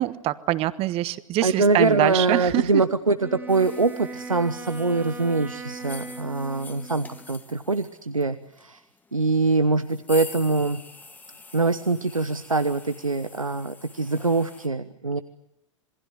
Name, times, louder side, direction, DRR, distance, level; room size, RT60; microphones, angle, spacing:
voice 1, 0.0-2.8, right 15 dB, 35° right, 15 dB, 1.3 m, -24 dB
voice 2, 1.4-8.8 9.1-10.8 11.5-15.2, right 3 dB, 90° right, 12 dB, 1.0 m, -24 dB
Wind instrument woodwind instrument, 3.2-7.3, right 3 dB, 10° right, 2.7 m, -39 dB
sound 1, 3.5-14.7, left 3 dB, 10° left, 1.6 m, -46 dB
27.0 x 22.0 x 9.4 m, 0.81 s
figure-of-eight pair, 95°, 17 cm